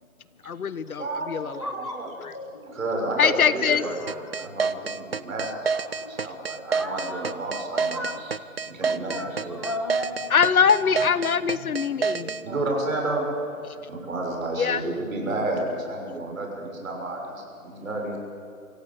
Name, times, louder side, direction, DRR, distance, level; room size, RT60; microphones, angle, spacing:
voice 1, 0.4-1.7 2.2-2.3 3.2-3.8 10.3-12.4 13.7-13.8 14.6-14.8, left 7 dB, 75° left, 16 dB, 1.2 m, -23 dB
voice 2, 1.0-2.1 2.7-8.0 8.7-9.6 11.9-13.3 13.9-18.2, right 2 dB, 60° right, 1 dB, 6.7 m, -31 dB
voice 3, 1.6-2.0 2.3-2.9 3.2-3.3 4.0-4.9 5.9-6.3 6.7-7.4 7.7-8.4 8.8-10.6, left 1 dB, 20° left, 4 dB, 0.8 m, -37 dB
sound 1, 4.1-12.4, right 5 dB, 45° right, 0.5 m, -27 dB
25.0 x 16.5 x 8.3 m, 2.4 s
hypercardioid pair, 175°, 44 cm